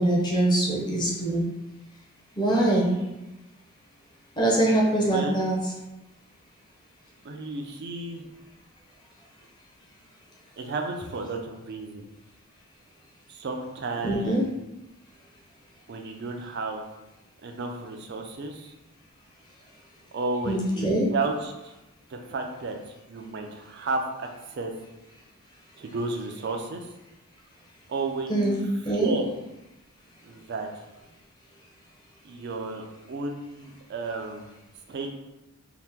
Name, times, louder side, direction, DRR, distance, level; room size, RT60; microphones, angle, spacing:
voice 1, 0.0-1.4 2.4-2.9 4.4-5.5 14.0-14.4 20.5-21.1 28.3-28.6 28.8-29.1, right 1 dB, 20° left, -3 dB, 0.6 m, -23 dB
voice 2, 5.1-5.5 7.2-8.3 10.6-12.1 13.3-14.5 15.9-16.8 17.4-18.7 20.1-21.7 22.1-22.8 23.1-24.7 25.8-26.9 27.9-28.6 28.9-29.3 30.2-30.7 32.2-34.6 34.9-35.1, right 3 dB, 55° right, 4 dB, 0.4 m, -32 dB
2.8 x 2.1 x 3.4 m, 0.98 s
head